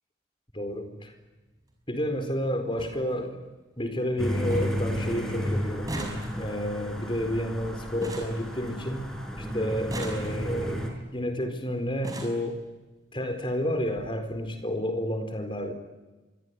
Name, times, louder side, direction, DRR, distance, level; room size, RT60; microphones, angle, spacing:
voice 1, 0.5-1.1 1.9-3.4 3.8-9.0 9.4-10.8 11.1-12.6 13.1-15.7, equal, 25° left, 7 dB, 4.3 m, -30 dB
sound 1, 0.6-0.8 2.1-2.2 2.4-2.5 2.8-3.0 3.4-3.9 4.2-4.3 4.5-4.9 5.1-9.1 9.7-10.7 11.5-11.6 11.9-12.5 13.4-13.5 13.8-14.0 14.3-14.4, right 1 dB, 20° right, 5.9 m, -40 dB
sound 2, 4.2-10.9, equal, 5° left, 4.9 m, -32 dB
26.5 x 22.5 x 9.7 m, 1.2 s
head